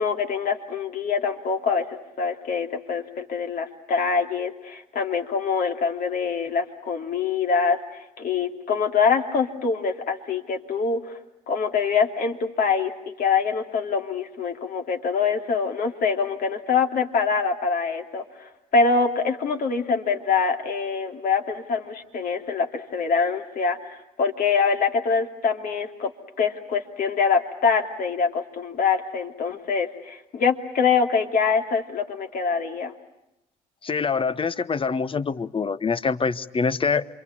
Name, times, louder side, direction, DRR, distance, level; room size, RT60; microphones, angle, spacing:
voice 1, 0.0-11.2 11.5-26.1 26.4-32.9, left 5 dB, 55° left, 3 dB, 2.9 m, -24 dB
voice 2, 33.8-37.1, left 5 dB, 30° left, 14 dB, 1.1 m, -25 dB
27.5 x 24.5 x 8.7 m, 0.88 s
hypercardioid pair, 65°, 17 cm